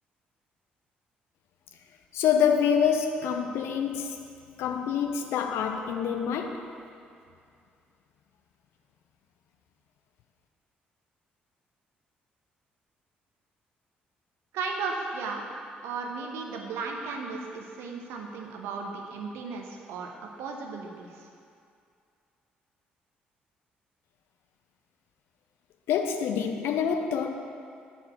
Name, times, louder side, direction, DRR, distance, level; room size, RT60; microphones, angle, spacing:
voice 1, 2.1-4.2 4.6-6.6 25.9-27.3, left 7 dB, 60° left, 5 dB, 0.6 m, -26 dB
voice 2, 14.5-15.5 15.8-20.1 20.4-21.3, right 4 dB, 60° right, 1 dB, 0.8 m, -35 dB
6.9 x 4.5 x 6.0 m, 2.4 s
figure-of-eight pair, 45°, 5 cm